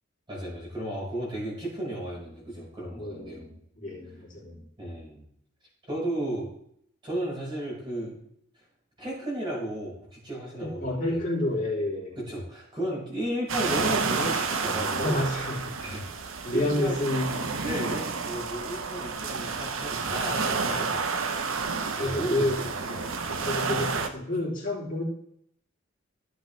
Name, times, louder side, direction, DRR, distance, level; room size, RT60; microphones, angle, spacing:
voice 1, 0.3-3.5 4.8-5.3 5.9-6.5 7.0-8.2 9.0-11.2 12.2-15.2 15.8-17.1 17.6-21.0 21.9-23.8, right 1 dB, 25° right, -5 dB, 5.2 m, -34 dB
voice 2, 2.9-4.7 10.8-12.2 15.0-15.7 16.4-17.5 20.6-20.9 22.0-22.6 23.4-25.0, left 1 dB, 40° left, -6 dB, 3.5 m, -29 dB
sound 1, 13.5-24.1, right 4 dB, 80° right, 1.0 m, -30 dB
14.5 x 7.9 x 3.4 m, 0.70 s
head